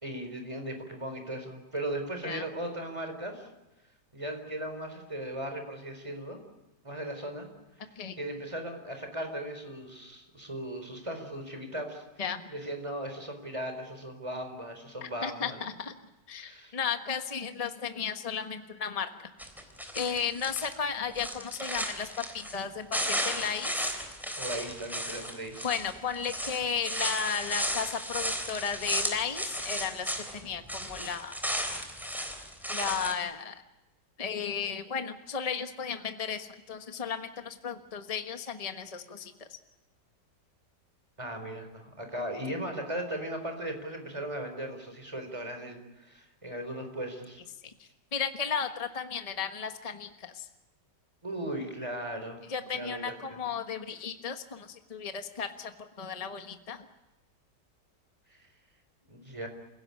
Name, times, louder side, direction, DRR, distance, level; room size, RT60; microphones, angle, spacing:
voice 1, 0.0-3.5 4.1-6.4 6.8-7.5 8.2-12.0 12.5-15.6 16.3-16.7 24.4-25.7 41.2-47.4 51.2-52.4 52.7-53.2 59.1-59.5, right 1 dB, 15° right, 5 dB, 4.4 m, -37 dB
voice 2, 15.0-16.0 16.3-19.3 19.9-23.9 25.6-31.4 32.6-33.6 34.2-39.5 47.6-50.5 52.5-56.9, left 7 dB, 25° left, 6 dB, 1.3 m, -34 dB
sound 1, 19.4-20.7 21.1-22.6 22.9-30.4 30.7-33.1, equal, ahead, 3.5 m, -34 dB
28.5 x 17.0 x 9.8 m, 0.98 s
omnidirectional pair, 1.9 m